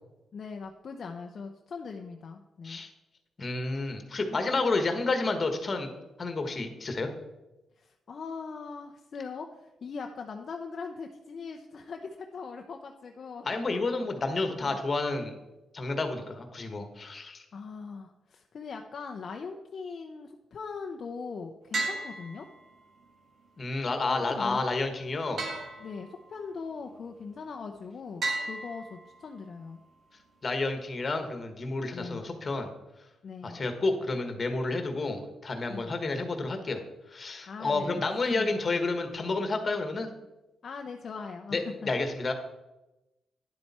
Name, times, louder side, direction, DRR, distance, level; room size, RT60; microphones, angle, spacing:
voice 1, 0.3-2.8 7.8-13.5 14.6-14.8 17.5-22.5 24.1-24.7 25.8-29.8 31.9-32.2 33.2-33.6 35.7-36.0 37.5-38.7 40.6-41.9, left 5 dB, 50° left, 3 dB, 0.7 m, -40 dB
voice 2, 3.4-5.9 6.2-7.1 13.4-15.3 15.7-17.4 23.6-25.4 30.4-32.7 33.4-36.8 37.1-40.1 41.5-42.3, left 3 dB, 35° left, 6 dB, 1.4 m, -30 dB
sound 1, 21.7-23.0 25.4-26.5 28.2-29.4, right 3 dB, 60° right, 2.0 m, -35 dB
10.5 x 7.8 x 4.3 m, 1.0 s
cardioid pair, 120°, 0 cm